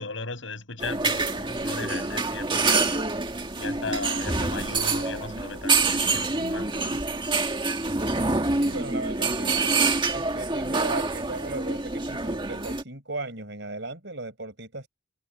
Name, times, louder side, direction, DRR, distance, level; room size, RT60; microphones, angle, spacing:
voice 1, 0.0-3.0 3.6-7.0, left 3 dB, 70° left, 7.4 m, -36 dB
sound 1, 0.8-12.8, right 3 dB, 25° right, 1.8 m, -26 dB
voice 2, 8.5-14.9, right 2 dB, 60° right, 6.3 m, -36 dB
head